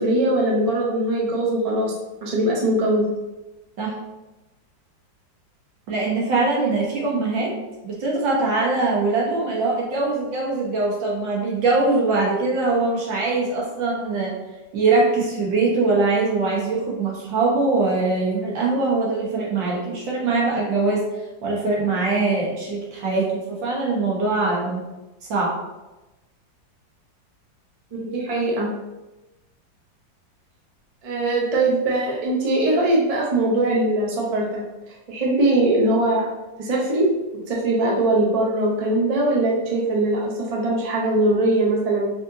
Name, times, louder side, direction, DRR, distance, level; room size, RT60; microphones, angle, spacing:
voice 1, 0.0-1.9 2.2-3.0 6.6-6.7 27.9-28.7 31.0-34.6 35.1-36.3 36.6-37.1 37.5-42.1, right 2 dB, 40° right, -3 dB, 0.5 m, -21 dB
voice 2, 5.9-7.5 7.8-14.4 14.7-21.0 21.4-24.8 25.3-25.5, right 3 dB, 75° right, -3 dB, 1.8 m, -22 dB
4.2 x 3.6 x 2.7 m, 1.0 s
omnidirectional pair, 2.0 m